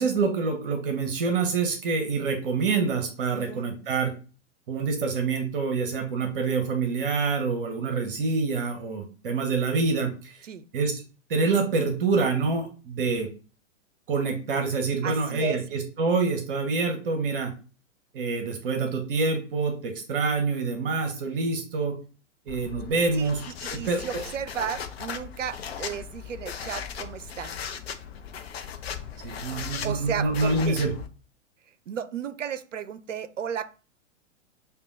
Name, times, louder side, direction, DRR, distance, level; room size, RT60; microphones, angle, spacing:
voice 1, 0.0-4.1 4.7-10.4 10.7-11.0 11.3-13.3 14.1-17.5 18.1-21.9 22.5-23.4 23.7-24.2 29.2-30.9, right 4 dB, 45° right, 0.8 m, -26 dB
voice 2, 3.3-3.7 10.4-10.7 15.0-15.6 23.1-27.6 29.8-30.8 31.9-33.7, right 8 dB, 75° right, 0.5 m, -34 dB
sound 1, 22.5-31.1, left 7 dB, 55° left, 0.6 m, -38 dB
6.7 x 2.3 x 2.5 m
figure-of-eight pair, 105°, 37 cm